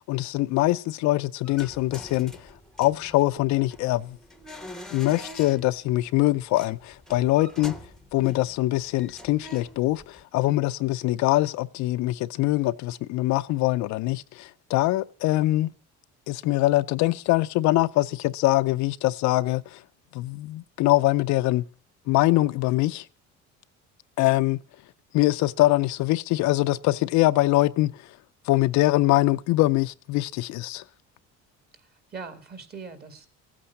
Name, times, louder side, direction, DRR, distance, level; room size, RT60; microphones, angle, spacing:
voice 1, 0.0-2.5 2.8-4.2 4.9-7.8 8.1-15.7 16.3-19.8 20.1-21.6 22.1-23.1 24.2-24.6 25.1-28.0 28.5-30.8, left 17 dB, 65° left, 0.6 m, -23 dB
sound 1, 1.4-10.2, left 1 dB, ahead, 0.9 m, -45 dB
voice 2, 31.7-33.3, right 5 dB, 30° right, 2.2 m, -41 dB
15.5 x 8.7 x 7.1 m
cardioid pair, 135°, 31 cm